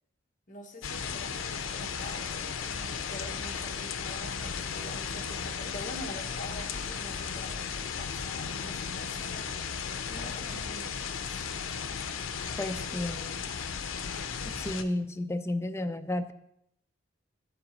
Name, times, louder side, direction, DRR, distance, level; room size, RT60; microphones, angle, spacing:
voice 1, 0.5-9.5 10.1-11.5, left 1 dB, 40° left, 1 dB, 1.3 m, -45 dB
sound 1, 0.8-14.8, left 6 dB, 85° left, 0.6 m, -35 dB
voice 2, 12.6-13.4 14.4-16.3, left 1 dB, 15° left, 10 dB, 0.4 m, -32 dB
9.8 x 3.8 x 7.3 m, 0.79 s
head